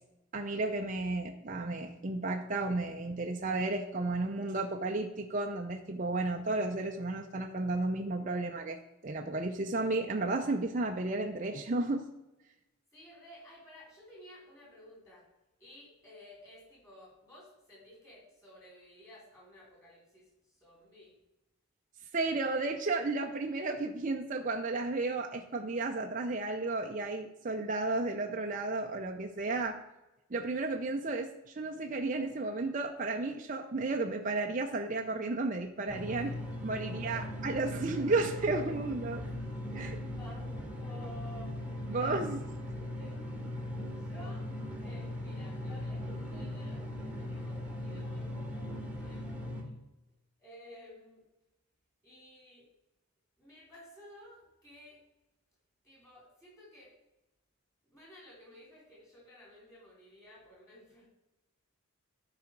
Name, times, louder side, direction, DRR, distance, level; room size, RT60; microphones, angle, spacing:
voice 1, 0.3-8.8 9.0-12.0 22.1-29.8 30.3-39.2 39.8-40.0 41.9-42.4, right 3 dB, 35° right, 3 dB, 0.5 m, -33 dB
voice 2, 12.9-15.3 15.6-21.2 36.2-36.4 36.8-37.3 37.6-37.8 38.5-38.7 39.4-42.2 43.0-43.2 44.0-44.5 44.8-49.8 50.4-51.2 52.0-52.7 53.4-55.0 55.8-56.9 57.8-61.1, equal, 15° left, -4 dB, 3.5 m, -54 dB
sound 1, 35.9-49.6, left 1 dB, 5° right, 1.3 m, -39 dB
12.0 x 5.0 x 4.6 m, 0.98 s
head